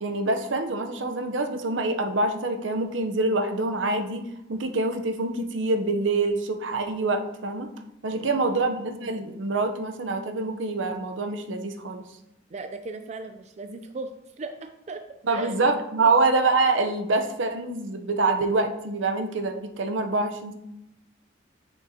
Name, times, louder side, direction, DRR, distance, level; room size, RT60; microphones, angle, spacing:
voice 1, 0.0-7.7 8.0-12.0 15.3-20.5, right 3 dB, 75° right, 6 dB, 0.7 m, -25 dB
voice 2, 8.2-8.6 12.5-15.0 15.3-15.7 16.0-16.1, right 3 dB, 35° right, 7 dB, 0.4 m, -38 dB
6.7 x 5.9 x 2.8 m, 0.84 s
head